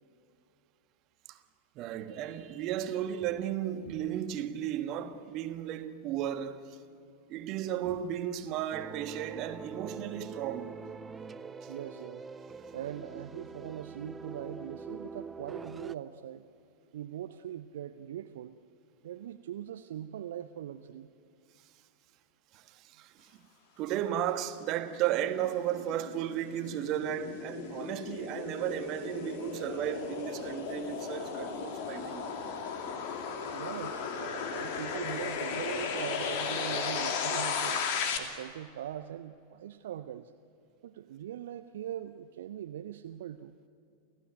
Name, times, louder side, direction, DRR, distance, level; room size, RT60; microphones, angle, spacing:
voice 1, 1.7-6.8 7.3-10.8 11.6-11.7 22.5-23.4 23.8-32.3 32.8-32.9, right 11 dB, 40° right, 1.5 m, -34 dB
sound 1, 8.7-15.9, right 5 dB, 15° right, 0.6 m, -44 dB
voice 2, 11.7-12.2 12.7-16.5 16.9-18.6 19.0-21.1 33.5-37.8 38.2-40.3 40.8-43.6, right 11 dB, 60° right, 0.7 m, -41 dB
sound 2, 25.0-38.2, left 6 dB, 50° left, 2.5 m, -35 dB
29.5 x 15.0 x 9.2 m
figure-of-eight pair, 90°, 0 cm